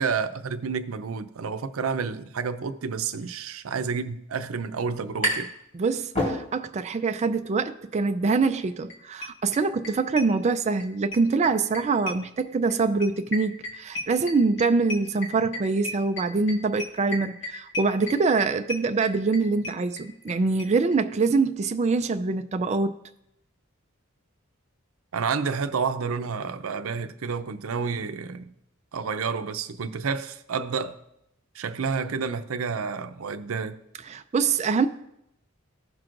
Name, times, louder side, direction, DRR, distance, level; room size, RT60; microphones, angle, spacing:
voice 1, 0.0-5.5 25.1-28.5 28.9-31.0 31.5-33.8, right 5 dB, 90° right, 0.6 m, -30 dB
sound 1, 4.5-5.6 5.9-6.9, equal, 40° left, 3.7 m, -28 dB
voice 2, 5.7-22.9 34.1-34.9, right 4 dB, 35° right, 0.4 m, -24 dB
sound 2, 8.6-8.7 8.9-9.0 9.2-10.9 11.1-20.3 20.6-20.7 20.9-21.0 21.2-21.3, left 2 dB, 60° left, 1.6 m, -35 dB
16.0 x 6.1 x 2.5 m
head